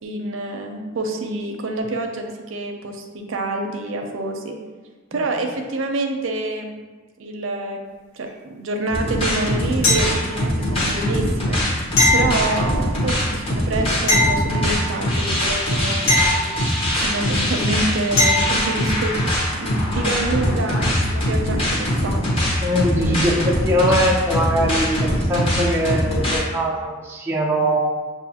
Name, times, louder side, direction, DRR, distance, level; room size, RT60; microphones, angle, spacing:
voice 1, 0.0-4.6 5.1-6.7 7.2-7.8 8.1-11.6 12.1-16.6 17.0-19.1 19.5-22.2 23.9-24.0, right 2 dB, 80° right, 3 dB, 0.5 m, -27 dB
sound 1, 8.9-26.4, equal, 30° left, 0.9 m, -22 dB
sound 2, 9.8-10.6 12.0-13.0 14.1-15.1 16.1-17.1 18.2-18.8 21.5-21.6, left 1 dB, 75° left, 1.3 m, -21 dB
voice 2, 22.6-27.8, equal, 10° right, -3 dB, 0.4 m, -21 dB
6.3 x 2.5 x 2.8 m, 1.3 s
head